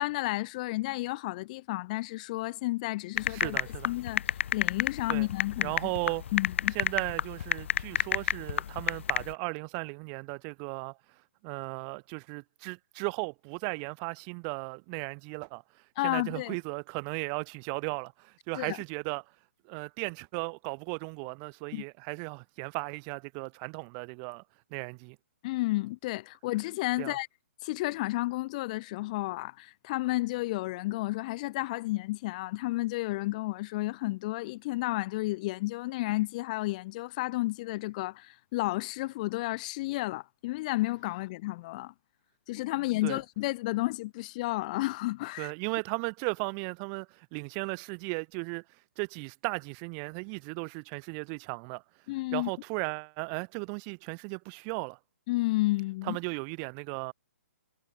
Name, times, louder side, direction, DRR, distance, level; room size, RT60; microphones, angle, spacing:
voice 1, 0.0-3.6 3.8-4.2 4.5-5.7 6.3-6.7 16.0-16.6 18.5-18.8 21.7-21.8 25.4-27.3 27.6-41.9 42.5-45.5 52.1-52.5 55.3-56.2, left 20 dB, 30° left, 1.2 m, -32 dB
sound 1, 3.2-9.3, left 9 dB, 60° left, 0.5 m, -30 dB
voice 2, 3.3-3.9 5.1-5.3 5.6-6.2 6.7-11.0 11.4-19.2 19.6-24.4 24.7-25.2 27.0-27.2 43.0-43.2 45.4-48.6 49.0-51.8 52.3-55.0 56.0-57.1, right 40 dB or more, 25° right, 3.3 m, -36 dB
hypercardioid pair, 155°, 7 cm